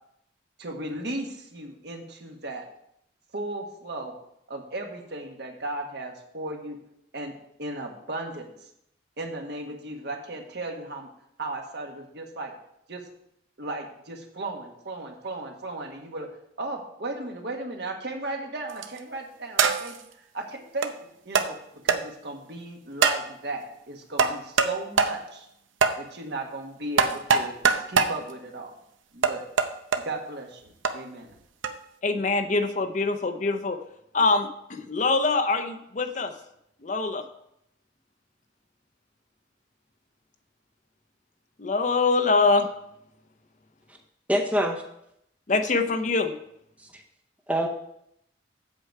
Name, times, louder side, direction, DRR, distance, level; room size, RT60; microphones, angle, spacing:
voice 1, 0.6-2.6 3.3-4.1 4.5-6.8 7.1-7.3 7.6-8.7 9.2-11.1 11.4-12.5 12.9-13.0 13.6-16.3 16.6-19.9 20.3-20.9 21.2-21.6 21.8-25.5 26.0-28.7 29.1-29.4 30.0-31.3, right 2 dB, 55° right, 2 dB, 1.4 m, -36 dB
sound 1, 18.7-19.0 19.6-20.0 20.8-20.9 21.3-21.5 21.9-22.0 23.0-23.2 24.2-24.7 25.0-25.1 25.8-26.0 27.0-28.1 29.2-30.0 30.8-30.9 31.6-31.8, right 5 dB, 85° right, 0.7 m, -22 dB
voice 2, 32.0-33.8 34.1-36.3 36.8-37.2 41.6-42.7 45.5-46.3, left 3 dB, 40° left, 8 dB, 0.6 m, -24 dB
voice 3, 44.3-44.8 46.8-47.0 47.5-47.7, equal, 5° right, 3 dB, 0.7 m, -25 dB
8.1 x 7.7 x 4.6 m, 0.77 s
head